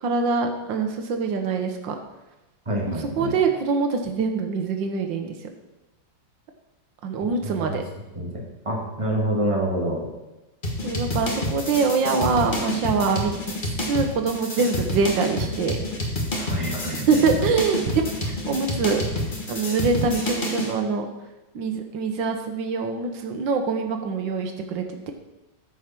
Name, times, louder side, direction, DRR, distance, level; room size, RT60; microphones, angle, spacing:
voice 1, 0.0-1.9 2.9-5.4 7.0-7.8 10.8-13.3 13.9-15.8 16.9-17.8 18.2-19.0 19.5-21.1 21.5-25.1, right 4 dB, 85° right, 5 dB, 1.7 m, -24 dB
voice 2, 2.7-3.3 7.4-7.8 8.1-10.1 16.3-17.5, right 1 dB, 15° right, -2 dB, 2.1 m, -27 dB
sound 1, 10.6-20.7, left 1 dB, 30° left, 1.5 m, -28 dB
13.0 x 5.0 x 5.9 m, 1.0 s
omnidirectional pair, 2.0 m